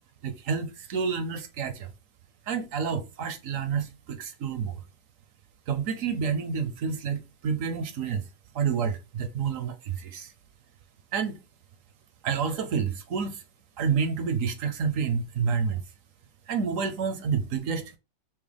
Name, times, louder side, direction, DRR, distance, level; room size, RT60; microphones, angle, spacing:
voice 1, 0.2-1.9 2.5-4.8 5.7-8.3 8.5-10.3 11.1-11.4 12.2-13.4 13.8-15.8 16.5-17.9, right 6 dB, 65° right, 0.8 m, -29 dB
6.0 x 2.1 x 3.3 m
omnidirectional pair, 1.8 m